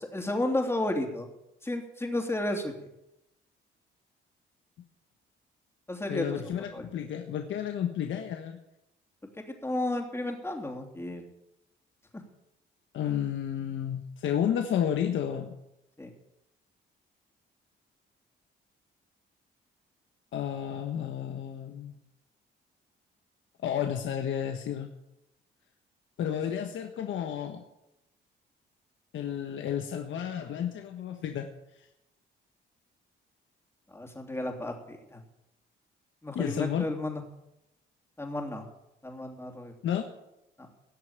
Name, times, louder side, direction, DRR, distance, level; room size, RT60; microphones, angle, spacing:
voice 1, 0.1-1.3 1.6-2.7 5.9-6.4 6.7-6.9 9.5-11.3 16.0-16.1 33.9-35.2 36.2-37.2 38.2-38.6 39.0-39.7 40.6-40.7, left 1 dB, 10° left, 3 dB, 3.1 m, -32 dB
voice 2, 6.1-8.6 12.9-15.5 20.3-22.0 23.6-25.0 26.2-27.6 29.1-31.9 36.3-36.9 39.8-40.1, left 9 dB, 75° left, 4 dB, 1.3 m, -31 dB
18.0 x 6.7 x 9.0 m, 0.88 s
cardioid pair, 90°, 20 cm